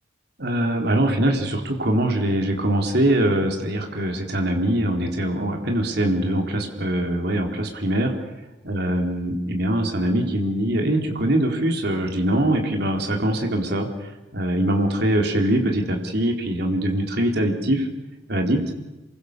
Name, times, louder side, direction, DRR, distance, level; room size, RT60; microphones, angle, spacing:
voice 1, 0.4-8.1 8.7-17.9 18.3-18.6, right 1 dB, 60° right, 3 dB, 3.9 m, -23 dB
28.0 x 23.5 x 6.8 m, 1.1 s
head